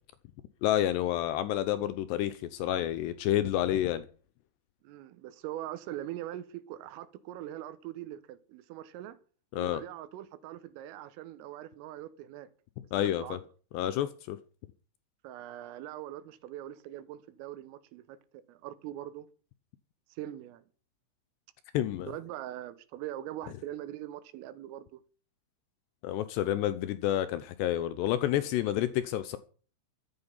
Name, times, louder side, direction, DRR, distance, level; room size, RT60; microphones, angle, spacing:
voice 1, 0.6-4.1 9.5-9.8 12.9-13.4 13.7-14.4 21.7-22.1 26.0-29.4, left 12 dB, 80° left, 2.5 m, -29 dB
voice 2, 4.8-9.2 9.6-12.5 13.0-13.4 15.2-18.2 18.5-19.3 20.1-20.7 22.0-25.0, right 13 dB, 90° right, 3.8 m, -42 dB
13.5 x 8.8 x 7.2 m
omnidirectional pair, 5.7 m